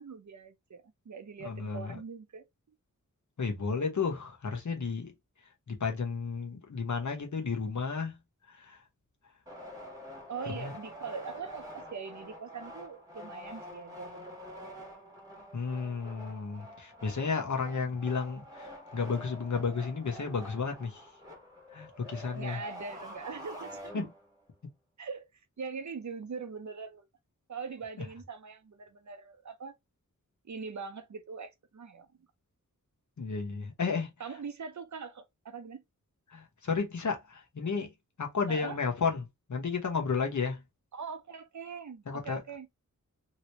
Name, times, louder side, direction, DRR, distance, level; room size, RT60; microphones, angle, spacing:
voice 1, 0.0-2.4 10.3-14.4 22.3-24.0 25.0-25.3 25.6-27.0 27.5-29.7 30.4-32.1 33.4-33.6 34.2-35.8 38.5-38.8 40.9-42.7, right 5 dB, 65° right, 0.7 m, -42 dB
voice 2, 1.4-2.0 3.4-5.1 5.7-8.2 8.5-8.8 10.5-10.7 15.5-21.0 21.7-22.6 23.9-24.1 33.2-34.1 36.3-37.9 38.2-40.6 42.1-42.4, left 5 dB, 65° left, 1.0 m, -33 dB
sound 1, 9.5-24.4, equal, 10° right, 1.5 m, -47 dB
3.0 x 2.9 x 2.9 m
wide cardioid pair, 95°, 32 cm